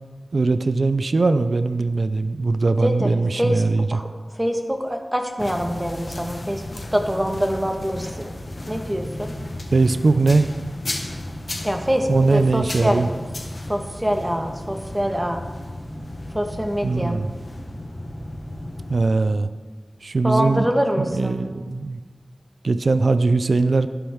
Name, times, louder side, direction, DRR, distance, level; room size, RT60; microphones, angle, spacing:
voice 1, 0.3-4.0 9.7-10.5 12.1-13.1 16.8-17.3 18.9-19.5 20.0-20.7 21.0-22.0 22.6-23.9, right 3 dB, 65° right, 11 dB, 0.5 m, -20 dB
voice 2, 2.8-3.6 3.9-4.0 4.4-6.6 6.9-8.3 8.7-9.3 11.6-13.0 13.7-15.4 16.3-17.2 20.2-21.4, equal, 10° right, 3 dB, 1.3 m, -24 dB
sound 1, 5.4-19.0, left 1 dB, 40° left, 1.1 m, -34 dB
12.0 x 11.5 x 3.6 m, 1.4 s
wide cardioid pair, 85°, 0 cm